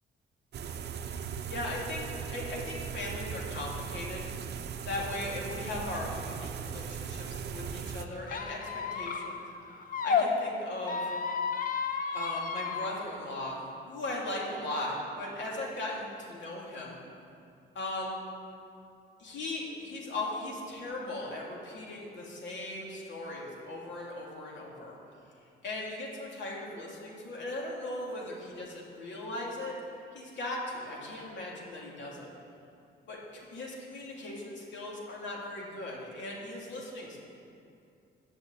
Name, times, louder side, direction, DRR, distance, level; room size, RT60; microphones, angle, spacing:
sound 1, 0.5-8.1, right 7 dB, 55° right, 0.7 m, -38 dB
voice 1, 1.5-4.3 4.8-9.4 10.0-11.1 12.1-17.0 17.7-18.2 19.2-25.0 25.6-29.8 30.1-32.3 33.1-37.2, left 2 dB, 65° left, -3 dB, 2.8 m, -38 dB
Squeak, 8.3-10.3 10.8-12.9, left 6 dB, 45° left, 0.8 m, -32 dB
9.0 x 6.5 x 8.3 m, 2.5 s
cardioid pair, 90°, 20 cm